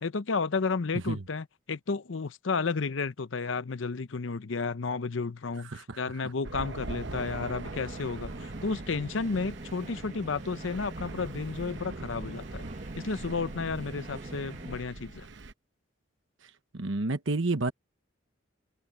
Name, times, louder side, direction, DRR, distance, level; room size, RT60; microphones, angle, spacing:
voice 1, 0.0-12.6 13.0-15.3, left 4 dB, 75° left, 0.7 m, -32 dB
sound 1, 6.3-14.8, right 2 dB, 35° right, 1.3 m, -44 dB
Thunder, 6.4-15.5, right 2 dB, 60° right, 1.0 m, -42 dB
voice 2, 16.7-17.7, right 2 dB, 80° right, 1.2 m, -29 dB
open air
head